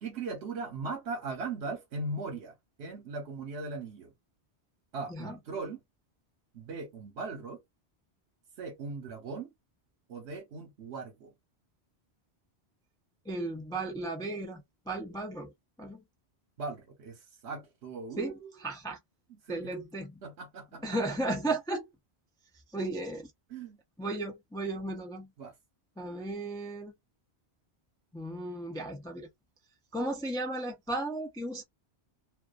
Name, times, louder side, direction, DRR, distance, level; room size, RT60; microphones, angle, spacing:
voice 1, 0.0-2.5 2.8-4.1 4.9-5.8 6.5-7.6 8.6-9.5 10.1-11.3 16.6-18.4 19.5-19.7 20.2-20.8 23.5-23.8 25.4-25.5, right 3 dB, 80° right, 1.1 m, -39 dB
voice 2, 5.1-5.4 13.3-15.5 15.8-16.0 18.2-19.0 19.5-20.2 20.8-21.9 22.7-23.3 24.0-25.3 26.0-26.9 28.1-29.3 29.9-31.6, right 2 dB, 5° left, 0.4 m, -35 dB
2.4 x 2.3 x 2.3 m
omnidirectional pair, 1.1 m